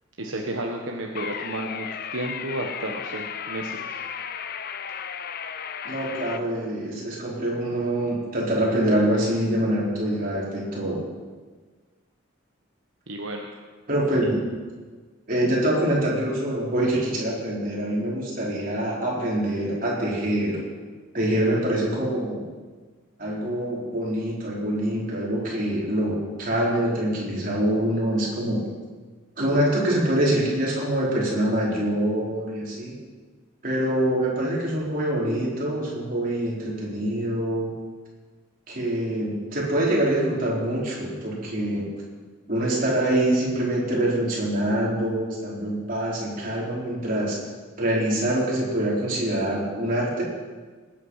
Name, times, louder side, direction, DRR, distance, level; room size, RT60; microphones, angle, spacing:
voice 1, 0.2-4.0 13.1-13.5, right 1 dB, 70° right, 1 dB, 1.3 m, -32 dB
sound 1, 1.1-6.4, left 7 dB, 50° left, 0.6 m, -34 dB
voice 2, 5.8-11.0 13.9-14.4 15.3-20.6 21.1-22.5 23.2-28.6 29.4-32.9 33.6-37.7 38.7-41.9 42.5-47.4 47.8-50.2, right 1 dB, 45° right, -5 dB, 4.3 m, -25 dB
19.5 x 9.2 x 5.7 m, 1.4 s
head